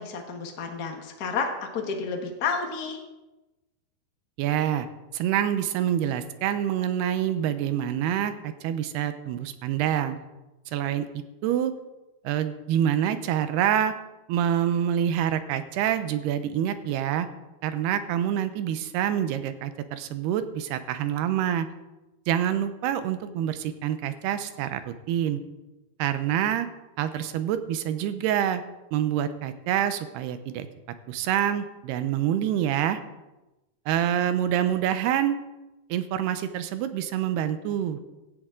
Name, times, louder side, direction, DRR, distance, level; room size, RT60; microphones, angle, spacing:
voice 1, 0.0-3.0, left 5 dB, 85° left, 2 dB, 0.8 m, -31 dB
voice 2, 4.4-4.9 5.1-10.2 10.7-11.7 12.2-13.9 14.3-17.3 17.6-21.7 22.3-25.4 26.0-26.7 27.0-28.6 28.9-30.7 31.1-33.0 33.9-35.4 35.9-38.0, right 10 dB, 85° right, 11 dB, 2.9 m, -26 dB
17.0 x 14.0 x 3.8 m, 1.0 s
omnidirectional pair, 4.6 m